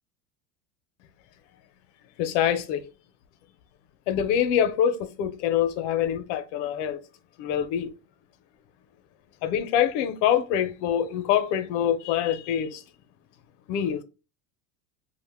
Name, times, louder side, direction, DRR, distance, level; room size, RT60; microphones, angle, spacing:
voice 1, 2.2-2.9 4.1-7.0 7.4-7.9 9.4-12.8 13.7-14.0, left 9 dB, 80° left, 0.5 m, -25 dB
2.5 x 2.1 x 3.3 m
supercardioid pair, 145°, 35 cm